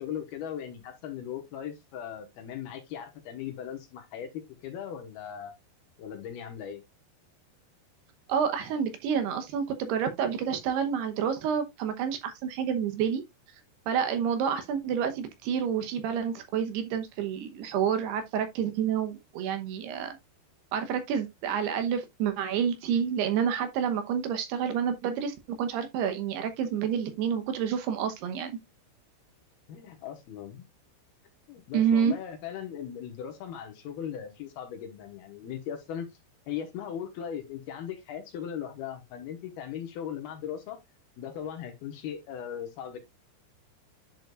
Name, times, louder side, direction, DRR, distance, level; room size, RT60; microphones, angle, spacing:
voice 1, 0.0-5.5 6.0-6.8 29.7-30.7 31.5-36.1 36.5-40.8 41.2-43.0, left 9 dB, 70° left, 2.9 m, -38 dB
voice 2, 8.3-13.2 13.9-20.2 20.7-28.6 31.7-32.2, right 8 dB, 75° right, 2.8 m, -29 dB
11.0 x 5.0 x 2.4 m
omnidirectional pair, 5.1 m